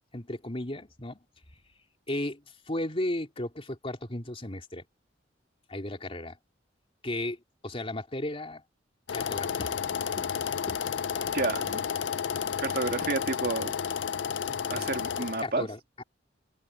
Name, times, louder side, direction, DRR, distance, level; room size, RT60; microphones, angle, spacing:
voice 1, 0.1-1.2 2.1-4.8 5.7-6.4 7.0-8.6 9.1-9.8 10.1-10.3 10.7-10.8 11.1-11.2 12.5-12.6 14.5-15.1 15.4-16.0, left 1 dB, 30° left, 3.3 m, -35 dB
sound 1, 9.1-15.4, left 7 dB, 75° left, 0.5 m, -31 dB
voice 2, 11.3-11.8 12.6-13.7 14.7-15.7, right 3 dB, 55° right, 1.8 m, -30 dB
head